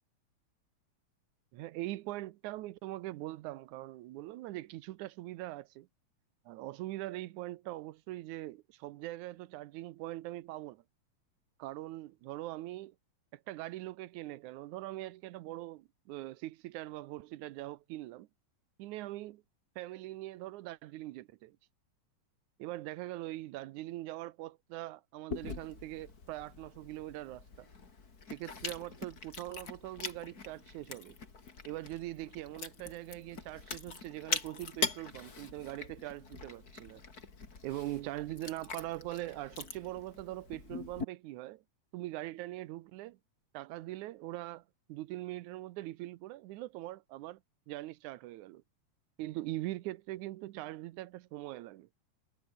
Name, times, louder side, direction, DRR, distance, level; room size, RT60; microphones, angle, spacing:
voice 1, 1.5-5.9 6.5-10.8 11.6-13.0 13.3-18.3 18.8-19.4 19.8-21.6 22.6-27.7 28.3-31.2 31.7-37.0 37.6-41.6 41.9-43.2 43.5-44.6 44.9-47.4 47.7-48.6 49.2-51.9, right 16 dB, 90° right, 2.2 m, -42 dB
Chewing mastication, 25.3-41.0, left 4 dB, 30° left, 3.0 m, -43 dB
omnidirectional pair, 3.3 m